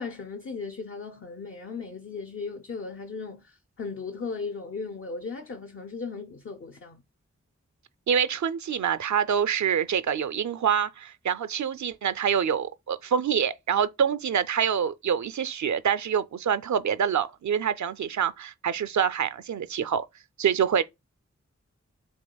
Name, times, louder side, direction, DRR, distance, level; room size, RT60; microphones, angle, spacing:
voice 1, 0.0-7.0, left 4 dB, 45° left, 0.6 m, -37 dB
voice 2, 8.1-20.1 20.4-20.8, right 8 dB, 75° right, 0.4 m, -26 dB
7.1 x 2.9 x 2.2 m
cardioid pair, 45°, 29 cm